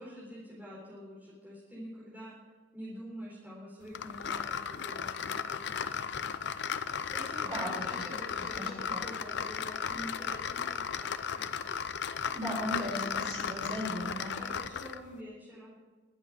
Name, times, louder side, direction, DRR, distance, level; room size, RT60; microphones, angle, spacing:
voice 1, 0.0-2.3 2.7-6.3 7.1-11.5 14.4-15.7, equal, 10° right, -9 dB, 4.0 m, -47 dB
sound 1, 3.9-15.1, left 7 dB, 60° left, 0.6 m, -35 dB
voice 2, 7.4-8.0 8.4-9.0 12.3-14.4, equal, 25° right, -3 dB, 6.1 m, -37 dB
23.0 x 8.4 x 4.9 m, 1.3 s
head